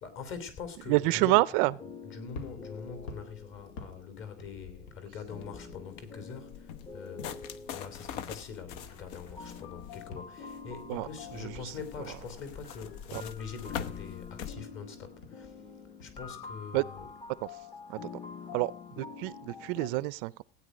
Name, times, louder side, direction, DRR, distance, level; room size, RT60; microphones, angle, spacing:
voice 1, 0.0-1.4 1.8-15.6 16.0-17.1, left 6 dB, 35° left, 3.4 m, -43 dB
voice 2, 0.9-1.7 10.9-11.1 11.4-11.5 13.1-13.2 16.7-16.8 17.4-17.5 17.9-18.0 18.5-18.7 19.0-20.4, right 21 dB, 55° right, 0.6 m, -27 dB
sound 1, 1.5-19.9, left 5 dB, 15° left, 1.0 m, -47 dB
sound 2, 2.2-6.6 6.8-17.6, left 4 dB, 75° left, 3.9 m, -51 dB
sound 3, 5.3-14.6, left 8 dB, 55° left, 1.2 m, -44 dB
16.5 x 9.5 x 5.1 m
cardioid pair, 165°, 32 cm